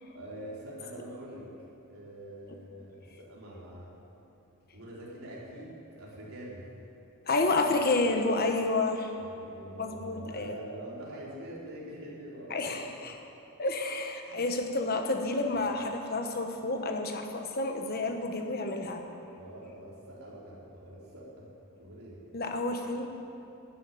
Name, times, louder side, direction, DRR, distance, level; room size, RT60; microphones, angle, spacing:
voice 1, 0.1-1.5 1.9-3.9 4.7-6.6 9.3-12.8 14.2-14.4 19.4-21.5 21.8-22.2, right 1 dB, 70° right, -6 dB, 3.9 m, -45 dB
voice 2, 7.3-9.1 9.8-10.6 12.5-13.2 13.6-19.0 22.3-23.1, left 2 dB, 45° left, 4 dB, 1.2 m, -30 dB
12.5 x 9.3 x 9.2 m, 2.9 s
head